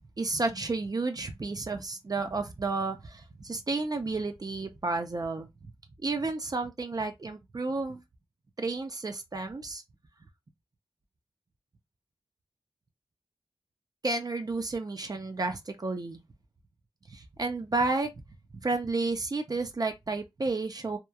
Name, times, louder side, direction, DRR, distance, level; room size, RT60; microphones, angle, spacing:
voice 1, 0.2-5.5 6.0-8.0 8.6-9.8 14.0-16.2 17.1-18.1 18.6-21.0, right 3 dB, 40° right, 0.5 m, -31 dB
2.9 x 2.3 x 2.2 m
wide cardioid pair, 80°, 10 cm